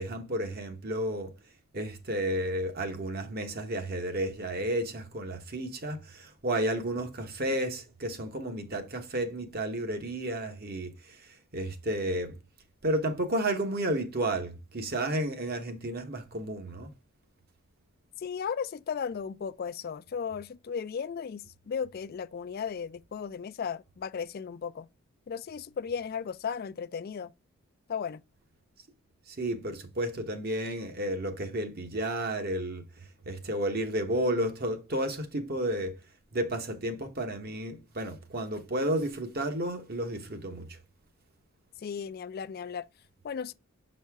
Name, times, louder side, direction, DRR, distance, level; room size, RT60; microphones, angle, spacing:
voice 1, 0.0-1.3 1.7-12.4 12.8-16.9 29.3-32.8 33.3-36.0 36.3-40.8, right 1 dB, 50° right, 1.1 m, -32 dB
voice 2, 18.2-24.9 25.3-27.3 27.9-28.2 41.8-42.9 43.2-43.5, left 6 dB, 45° left, 0.3 m, -35 dB
6.6 x 4.2 x 3.5 m
head